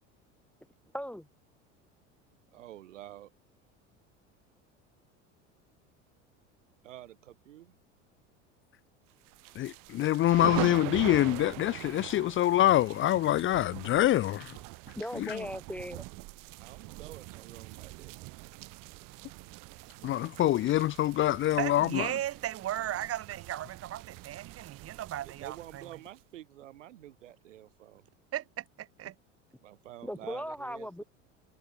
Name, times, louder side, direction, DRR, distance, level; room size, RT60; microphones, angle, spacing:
voice 1, 0.9-1.3 14.9-16.0 30.0-31.0, equal, 5° left, 1.1 m, -38 dB
voice 2, 2.5-3.3 6.8-7.7 16.6-18.1 25.2-28.0 29.6-31.0, right 13 dB, 80° right, 3.8 m, -49 dB
sound 1, 9.3-26.2, right 24 dB, 60° right, 3.8 m, -43 dB
voice 3, 9.6-14.5 15.2-15.4 20.0-22.1, left 14 dB, 35° left, 0.5 m, -25 dB
voice 4, 21.6-25.8 28.3-29.1, right 12 dB, 40° right, 1.5 m, -36 dB
hypercardioid pair, 80°, 37 cm